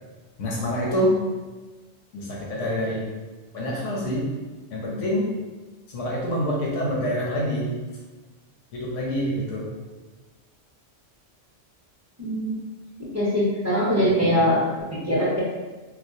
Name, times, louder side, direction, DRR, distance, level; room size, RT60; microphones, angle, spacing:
voice 1, 0.4-1.2 2.1-3.1 3.5-4.3 4.7-5.3 5.9-7.8 8.7-9.7 14.0-14.4, equal, 85° left, -4 dB, 1.1 m, -26 dB
voice 2, 12.2-12.6 13.1-14.6 14.9-15.4, equal, 20° right, -7 dB, 0.6 m, -22 dB
4.3 x 2.2 x 2.6 m, 1.2 s
omnidirectional pair, 1.2 m